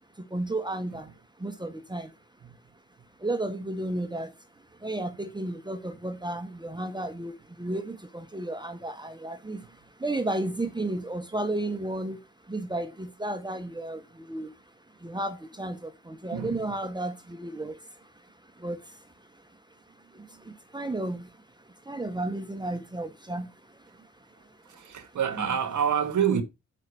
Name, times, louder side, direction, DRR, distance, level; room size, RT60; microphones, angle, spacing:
voice 1, 0.2-1.1 1.4-2.1 3.2-19.8 20.1-25.5, right 2 dB, 15° right, 1.2 m, -34 dB
voice 2, 16.3-16.7 20.2-20.4 24.4-26.4, right 8 dB, 70° right, 1.2 m, -28 dB
7.4 x 5.7 x 4.7 m
supercardioid pair, 55°, 31 cm